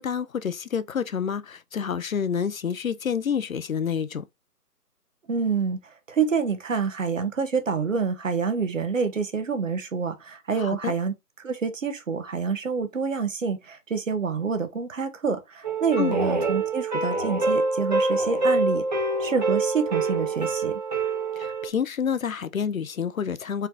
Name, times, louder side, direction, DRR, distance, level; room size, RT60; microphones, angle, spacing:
voice 1, 0.0-4.2 10.6-10.9 16.0-16.2 21.4-23.7, left 7 dB, 60° left, 0.5 m, -28 dB
voice 2, 5.3-20.8, right 5 dB, 55° right, 1.0 m, -27 dB
sound 1, 15.6-21.7, right 3 dB, 30° right, 0.8 m, -25 dB
4.7 x 3.3 x 2.8 m
figure-of-eight pair, 155°, 47 cm